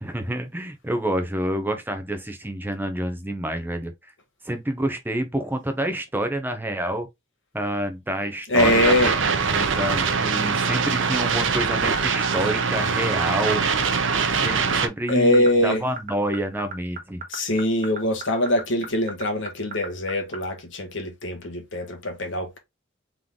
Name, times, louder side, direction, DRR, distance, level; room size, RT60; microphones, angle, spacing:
voice 1, 0.0-3.9 4.4-7.1 7.5-9.2 9.5-13.6 14.3-17.2, right 1 dB, 10° right, 0.7 m, -28 dB
voice 2, 8.5-9.1 15.1-15.8 17.3-22.6, left 1 dB, 70° left, 1.4 m, -22 dB
sound 1, 8.6-14.9, right 5 dB, 70° right, 0.7 m, -23 dB
sound 2, 9.8-20.4, right 5 dB, 45° right, 1.2 m, -34 dB
3.8 x 3.2 x 3.6 m
head